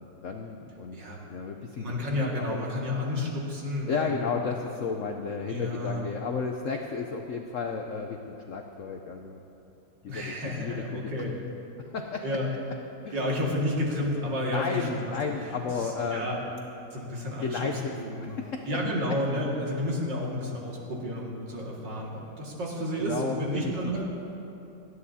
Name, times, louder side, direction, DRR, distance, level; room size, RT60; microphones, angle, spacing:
voice 1, 0.0-1.0 1.3-2.6 3.9-9.4 10.0-11.4 11.9-12.2 13.0-13.3 14.5-16.3 17.4-17.9 18.2-18.7 23.0-23.9, left 5 dB, 70° left, 3 dB, 0.7 m, -33 dB
voice 2, 1.8-4.1 5.5-6.0 10.1-11.3 12.2-12.5 13.1-15.1 15.5-16.4 16.9-17.7 18.0-18.3 18.7-24.1, left 1 dB, 65° right, -3 dB, 2.7 m, -31 dB
28.5 x 9.6 x 2.8 m, 2.8 s
omnidirectional pair, 2.1 m